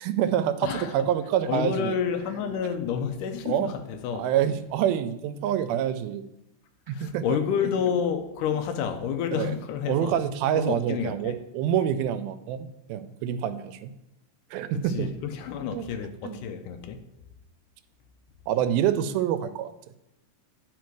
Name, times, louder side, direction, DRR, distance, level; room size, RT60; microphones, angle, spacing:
voice 1, 0.0-2.0 3.5-3.7 4.1-6.2 6.9-7.4 9.3-9.5 9.9-13.9 14.5-15.1 15.7-15.8 16.2-16.4 18.5-19.7, right 10 dB, 85° right, 2.4 m, -26 dB
voice 2, 0.6-1.1 1.5-4.3 6.9-10.2 10.6-11.4 14.7-17.0, left 7 dB, 80° left, 2.0 m, -29 dB
10.5 x 4.7 x 4.6 m
omnidirectional pair, 4.2 m